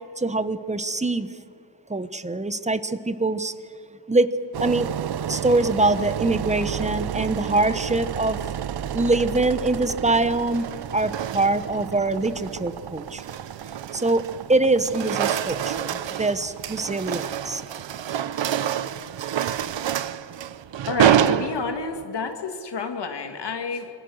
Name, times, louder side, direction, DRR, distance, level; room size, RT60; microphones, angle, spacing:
voice 1, 0.2-1.3 1.9-3.5 4.1-4.3 4.6-4.9 5.3-8.4 8.9-10.7 10.9-13.4 13.9-14.2 14.5-17.6, right 2 dB, 15° right, 13 dB, 1.0 m, -23 dB
Engine, 4.5-21.4, right 10 dB, 60° right, 0.6 m, -33 dB
sound 1, 8.7-9.1 10.3-11.8 12.2-12.5 13.0-14.4 14.7-22.0, right 10 dB, 90° right, 0.9 m, -27 dB
voice 2, 20.8-23.9, left 4 dB, 70° left, 5 dB, 2.3 m, -30 dB
27.5 x 25.0 x 6.5 m, 2.6 s
wide cardioid pair, 135°, 43 cm